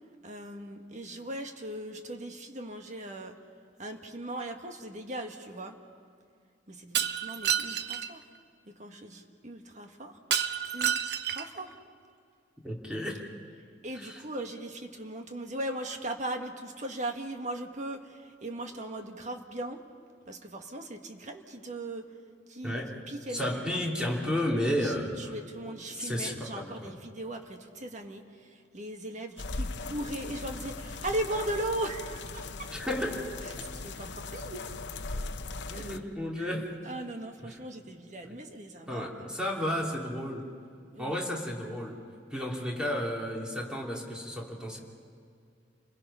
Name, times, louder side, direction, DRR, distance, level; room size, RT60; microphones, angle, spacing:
voice 1, 0.2-3.4 3.8-5.8 6.7-8.2 8.6-10.2 10.7-11.0 11.3-11.7 13.8-19.8 20.2-22.1 22.5-22.8 23.1-23.8 24.8-32.7 33.4-34.7 35.7-35.9 36.4-39.3 40.9-41.2, right 1 dB, 40° right, 4 dB, 1.7 m, -38 dB
Shatter, 6.9-8.1 10.3-11.6, right 9 dB, 65° right, 0.9 m, -29 dB
voice 2, 12.6-13.2 13.9-14.2 22.6-23.0 23.3-25.3 25.9-26.9 32.7-33.2 35.7-36.7 37.4-37.5 38.2-38.3 38.9-40.5 41.0-42.0 42.3-44.8, left 1 dB, 5° right, -2 dB, 3.1 m, -32 dB
sound 1, 29.4-36.0, left 3 dB, 75° left, 0.8 m, -39 dB
30.0 x 21.5 x 5.7 m, 2.3 s
head